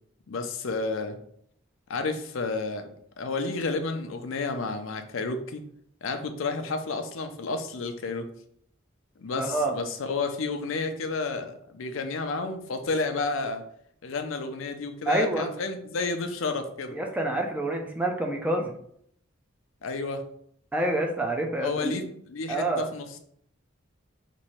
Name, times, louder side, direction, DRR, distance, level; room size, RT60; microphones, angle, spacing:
voice 1, 0.3-1.2 1.9-2.9 3.2-5.6 6.0-8.3 9.2-13.6 14.0-17.0 19.8-20.2 21.6-23.2, left 3 dB, 75° left, 7 dB, 0.5 m, -31 dB
voice 2, 9.4-9.8 15.1-15.5 16.9-18.7 20.7-21.9 22.5-22.9, right 1 dB, 5° right, 1 dB, 0.4 m, -27 dB
3.0 x 2.6 x 4.3 m, 0.67 s
head